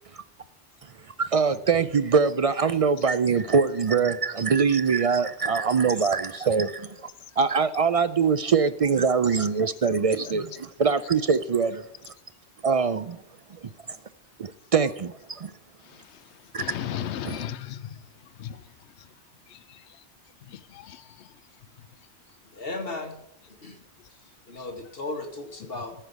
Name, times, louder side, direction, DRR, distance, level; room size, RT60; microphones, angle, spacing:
voice 1, 1.2-7.1 7.4-11.8 12.6-13.2 14.4-15.5 16.5-16.6 17.3-17.4, right 5 dB, 55° right, 0.4 m, -23 dB
voice 2, 16.6-18.0 18.4-18.6 19.5-19.6 20.5-21.0, left 10 dB, 80° left, 0.9 m, -34 dB
voice 3, 22.5-23.2 23.5-23.8 24.1-25.9, left 2 dB, 55° left, 1.7 m, -36 dB
14.5 x 5.6 x 8.0 m
omnidirectional pair, 1.1 m